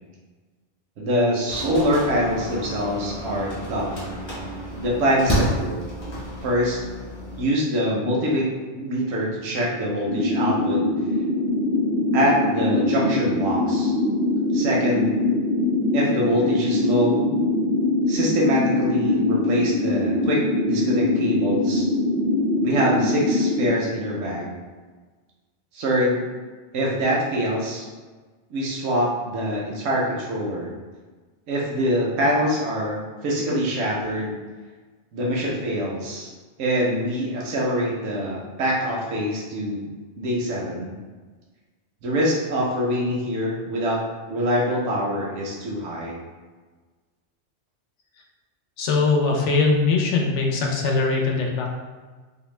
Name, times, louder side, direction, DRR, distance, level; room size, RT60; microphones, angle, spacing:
voice 1, 1.0-4.1 4.8-5.8 6.4-6.8 7.4-8.5 8.7-10.8 12.1-13.9 14.5-15.1 15.9-17.3 18.1-21.9 22.6-24.5 25.7-26.2 26.7-27.9 28.5-30.7 31.5-34.3 35.1-36.3 36.6-39.9 40.2-40.9 42.0-44.0 44.3-46.2, equal, 80° right, -4 dB, 0.9 m, -24 dB
sound 1, 1.5-7.4, equal, 25° left, 0.7 m, -30 dB
sound 2, 10.0-23.7, left 2 dB, 55° right, 0.5 m, -22 dB
voice 2, 48.8-51.7, left 4 dB, 80° left, 0 dB, 0.9 m, -21 dB
2.6 x 2.1 x 3.1 m, 1.4 s
omnidirectional pair, 1.2 m